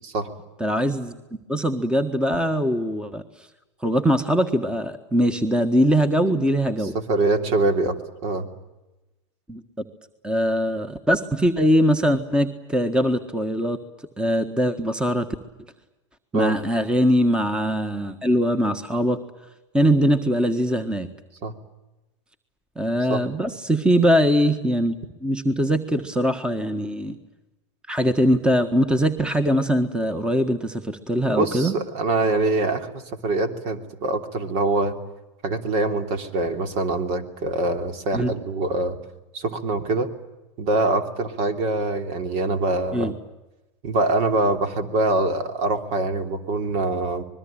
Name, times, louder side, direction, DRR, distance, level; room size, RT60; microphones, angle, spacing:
voice 1, 0.6-1.2 1.5-3.2 3.8-6.9 9.5-9.6 10.2-13.8 14.2-15.3 16.3-19.2 19.7-21.1 22.8-25.0 25.2-27.2 27.9-31.7 38.1-38.3 42.9-43.1, equal, 5° right, 10 dB, 1.6 m, -21 dB
voice 2, 6.9-7.9 8.2-8.5 16.3-16.5 21.4-21.5 23.1-23.2 31.4-35.0 35.4-39.0 39.3-40.1 40.6-43.1 43.8-47.2, right 2 dB, 50° right, 7 dB, 3.2 m, -24 dB
25.5 x 21.5 x 8.8 m, 1.0 s
hypercardioid pair, 110°, 15 cm